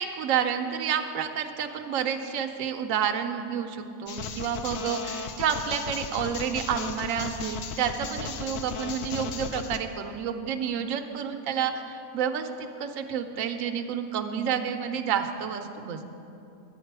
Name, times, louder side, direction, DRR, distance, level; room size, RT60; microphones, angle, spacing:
voice 1, 0.0-12.5 12.8-16.1, right 8 dB, 70° right, 6 dB, 0.9 m, -29 dB
sound 1, 4.1-9.8, left 5 dB, 70° left, 0.6 m, -36 dB
10.0 x 8.8 x 4.6 m, 2.7 s
omnidirectional pair, 1.6 m